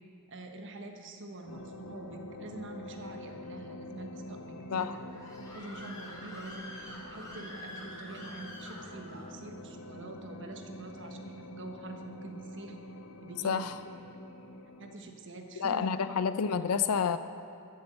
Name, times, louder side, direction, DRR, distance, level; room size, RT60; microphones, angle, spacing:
voice 1, 0.3-5.0 5.5-12.8 13.2-13.7 14.8-16.2, right 2 dB, 60° right, 4 dB, 1.2 m, -45 dB
sound 1, 1.5-15.0, left 1 dB, 65° left, 0.8 m, -47 dB
Screaming, 4.8-9.3, left 1 dB, 15° left, 3.0 m, -46 dB
voice 2, 13.4-13.8 15.6-17.2, left 6 dB, 85° left, 12 dB, 0.5 m, -29 dB
12.0 x 8.0 x 7.9 m, 2.6 s
head